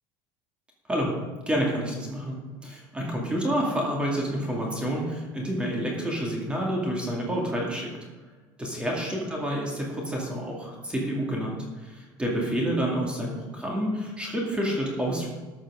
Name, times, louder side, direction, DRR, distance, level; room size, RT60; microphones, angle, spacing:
voice 1, 0.9-1.2 1.5-7.9 8.6-15.3, equal, 10° right, -2 dB, 2.4 m, -29 dB
13.0 x 6.2 x 6.3 m, 1.4 s
cardioid pair, 145°, 10 cm